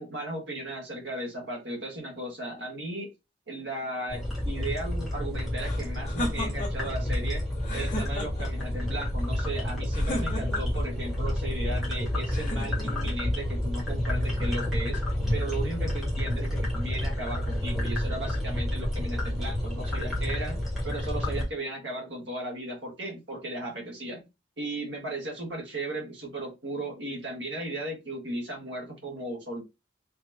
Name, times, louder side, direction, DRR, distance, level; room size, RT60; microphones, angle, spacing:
voice 1, 0.0-3.1 3.5-7.4 7.7-15.0 15.3-20.6 20.8-24.2 24.6-29.6, right 1 dB, 65° right, 0 dB, 1.6 m, -36 dB
sound 1, 4.1-21.4, left 1 dB, ahead, 1.4 m, -29 dB
sound 2, 5.6-6.9 7.6-8.6 9.9-10.8 12.3-13.2, left 1 dB, 40° left, 1.5 m, -35 dB
4.1 x 3.1 x 2.7 m, 0.24 s
head